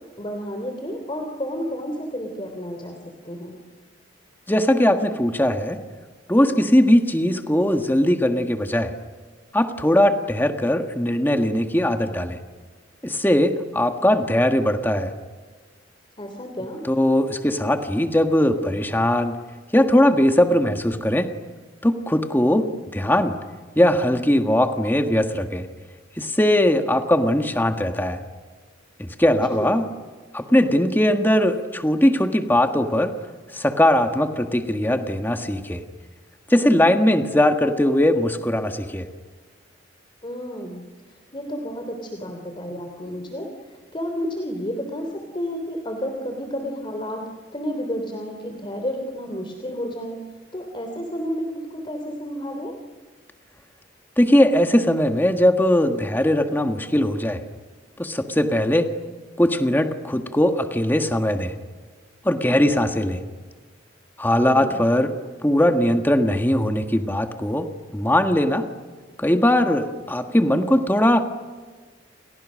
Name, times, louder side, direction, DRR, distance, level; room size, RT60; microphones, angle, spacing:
voice 1, 0.2-3.6 16.2-16.8 29.2-29.8 40.2-40.8 41.1-47.2 47.5-50.2 50.5-52.8 64.3-64.8, equal, 25° left, 4 dB, 3.2 m, -31 dB
voice 2, 4.5-5.8 6.3-8.9 9.5-12.4 13.0-15.1 16.9-19.4 19.7-21.3 21.8-23.4 23.7-25.7 26.2-28.2 29.0-29.8 30.3-33.1 33.5-35.8 36.5-39.1 54.2-57.4 58.0-58.9 59.4-61.5 62.2-63.2 64.2-65.1 65.4-68.6 69.2-71.2, left 1 dB, 10° left, 6 dB, 1.6 m, -20 dB
30.0 x 29.5 x 6.4 m, 1.4 s
head